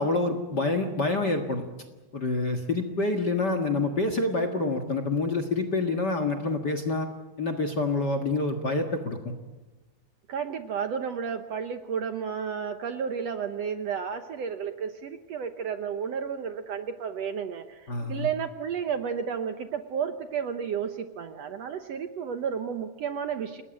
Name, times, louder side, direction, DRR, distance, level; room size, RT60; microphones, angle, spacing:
voice 1, 0.0-1.6 2.1-7.1 7.4-9.2 17.9-18.3, left 3 dB, 40° left, 4 dB, 1.7 m, -27 dB
voice 2, 10.3-23.6, right 7 dB, 65° right, 8 dB, 1.8 m, -32 dB
29.0 x 20.0 x 8.9 m, 1.2 s
omnidirectional pair, 3.8 m